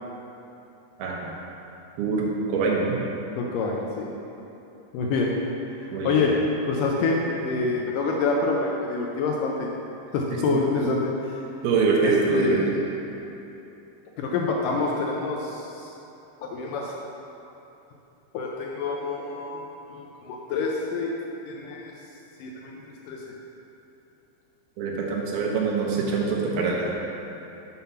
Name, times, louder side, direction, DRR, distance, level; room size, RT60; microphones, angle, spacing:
voice 1, 2.5-3.0 5.9-6.2 10.5-10.6 11.6-12.6 24.8-27.0, right 4 dB, 90° right, -2 dB, 2.9 m, -24 dB
voice 2, 3.4-4.1 4.9-5.3 5.8-6.4 6.7-9.7 10.1-11.1 12.0-12.7 13.2-13.3 14.2-15.9 16.5-16.9 18.3-21.1 21.5-21.9 22.4-23.2, left 3 dB, 80° left, -1 dB, 2.0 m, -27 dB
7.2 x 5.6 x 5.6 m, 2.9 s
omnidirectional pair, 4.3 m